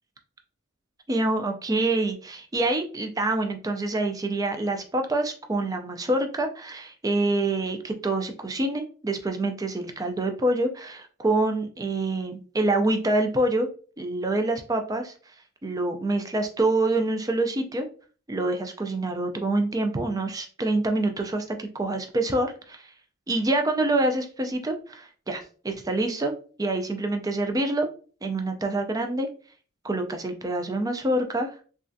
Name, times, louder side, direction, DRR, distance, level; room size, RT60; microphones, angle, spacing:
voice 1, 1.1-13.7 14.0-15.1 15.6-17.9 18.3-22.9 23.3-26.3 26.6-27.9 28.2-29.3 29.8-31.5, right 2 dB, 15° right, 5 dB, 0.4 m, -26 dB
3.2 x 2.4 x 2.6 m, 0.39 s
head